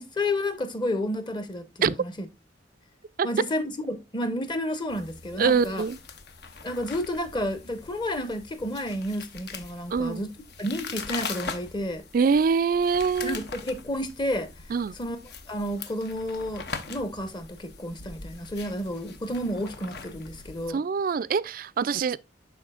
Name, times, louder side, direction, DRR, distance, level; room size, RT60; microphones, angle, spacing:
voice 1, 0.0-2.3 3.2-5.8 6.6-10.3 10.6-12.1 13.2-14.5 15.0-15.2 15.5-20.8, left 1 dB, 25° left, 0.9 m, -31 dB
sound 1, 4.9-20.7, left 5 dB, 60° left, 0.8 m, -41 dB
voice 2, 5.4-6.0 9.9-10.3 12.1-13.4 14.7-14.9 20.7-22.2, right 5 dB, 50° right, 0.3 m, -24 dB
11.5 x 4.1 x 2.4 m
head